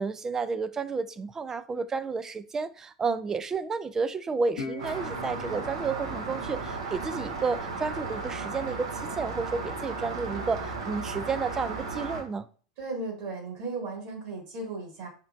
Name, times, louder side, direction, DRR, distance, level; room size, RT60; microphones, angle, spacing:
voice 1, 0.0-12.5, right 4 dB, 15° right, 0.3 m, -31 dB
Guitar, 4.6-7.8, left 3 dB, 70° left, 0.9 m, -42 dB
Rain, 4.8-12.2, right 4 dB, 65° right, 1.0 m, -35 dB
voice 2, 12.8-15.1, right 3 dB, 45° right, 1.9 m, -36 dB
5.7 x 3.0 x 2.5 m
figure-of-eight pair, 85°, 3 cm